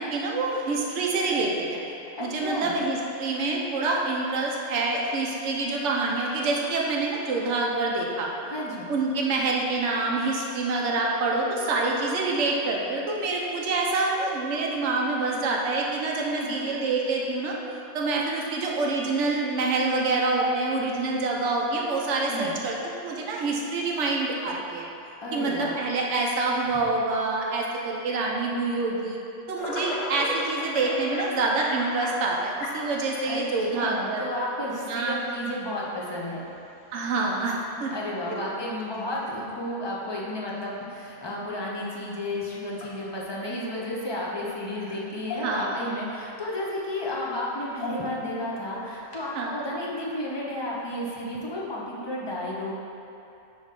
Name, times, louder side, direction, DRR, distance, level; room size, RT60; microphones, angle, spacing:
voice 1, 0.0-1.8 2.2-8.3 8.9-17.6 17.9-24.9 25.3-29.2 29.5-34.2 34.9-35.2 36.9-37.9 38.2-38.4 45.4-45.8 49.3-49.6, right 3 dB, 60° right, -2 dB, 1.0 m, -26 dB
voice 2, 2.3-2.8 8.5-8.9 16.3-16.7 22.3-22.6 25.2-25.8 33.2-33.4 33.7-36.4 37.9-52.7, left 1 dB, 40° left, -4 dB, 0.3 m, -32 dB
sound 1, 29.6-33.4 34.2-34.3 35.4-35.5 36.2-36.5 36.9-37.0 37.5-37.7 39.0-39.1 41.9-42.0 42.7-43.4 44.8-44.9 45.2-45.8 46.2-46.3 47.6-48.3 49.0-49.4, left 1 dB, 70° left, 1.1 m, -36 dB
6.0 x 3.2 x 5.2 m, 2.8 s
omnidirectional pair, 1.5 m